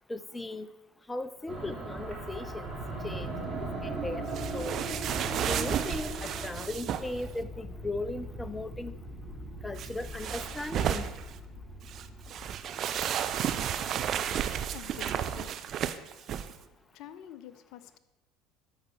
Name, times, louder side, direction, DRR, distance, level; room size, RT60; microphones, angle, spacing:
voice 1, 0.1-0.7 1.1-2.7 3.0-3.3 3.8-4.8 5.4-9.0 9.6-11.1, left 2 dB, 15° left, 14 dB, 0.5 m, -37 dB
sound 1, 1.5-14.1, right 2 dB, 15° right, 3.2 m, -39 dB
sound 2, 4.3-7.2 9.8-11.4 11.9-16.5, right 9 dB, 50° right, 0.6 m, -32 dB
voice 2, 13.6-15.6 16.9-18.0, left 10 dB, 60° left, 13 dB, 0.5 m, -49 dB
13.0 x 5.4 x 4.7 m, 1.0 s
hypercardioid pair, 65°, 0 cm